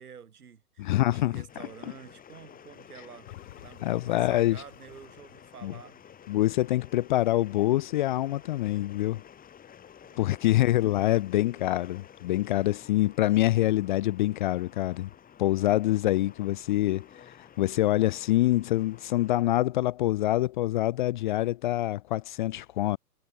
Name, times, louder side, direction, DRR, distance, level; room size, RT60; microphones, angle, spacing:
voice 1, 0.0-3.3 3.6-6.1 10.0-10.5, right 7 dB, 75° right, 3.7 m, -49 dB
voice 2, 0.8-1.4 3.8-4.6 5.6-5.7 6.3-9.2 10.2-15.1 15.4-23.0, left 15 dB, 35° left, 0.5 m, -25 dB
sound 1, 1.5-19.4, left 8 dB, 20° left, 4.6 m, -52 dB
sound 2, 3.2-8.3 8.8-8.9, left 15 dB, 50° left, 7.5 m, -54 dB
figure-of-eight pair, 110°, 45 cm